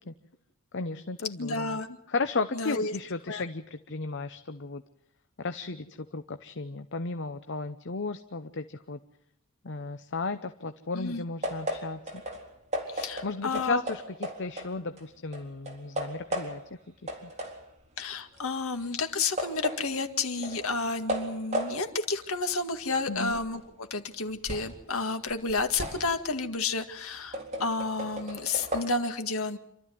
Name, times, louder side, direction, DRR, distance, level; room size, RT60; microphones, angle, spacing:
voice 1, 0.7-1.8 2.1-4.8 5.4-5.9 6.1-9.0 9.6-12.2 13.2-16.6 17.2-17.3 23.1-23.4, left 3 dB, 55° left, 9 dB, 0.8 m, -34 dB
voice 2, 1.4-2.0 2.5-3.0 3.3-3.4 10.9-11.3 12.9-13.8 18.0-23.6 23.9-29.6, left 3 dB, 70° left, 6 dB, 2.1 m, -31 dB
sound 1, 11.4-15.1 15.3-16.8 17.1-24.8 25.2-28.9, equal, 30° right, 4.1 m, -36 dB
27.5 x 13.0 x 9.4 m, 0.75 s
head